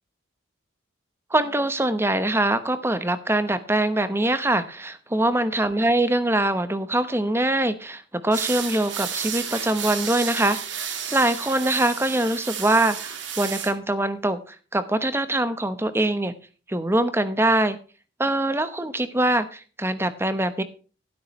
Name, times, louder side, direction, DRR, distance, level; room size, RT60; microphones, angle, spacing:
voice 1, 1.3-16.3 16.7-17.8 18.2-20.6, right 1 dB, 10° right, 12 dB, 1.0 m, -23 dB
sound 1, 8.3-13.7, right 8 dB, 70° right, 2.1 m, -32 dB
12.5 x 12.5 x 3.2 m, 0.36 s
head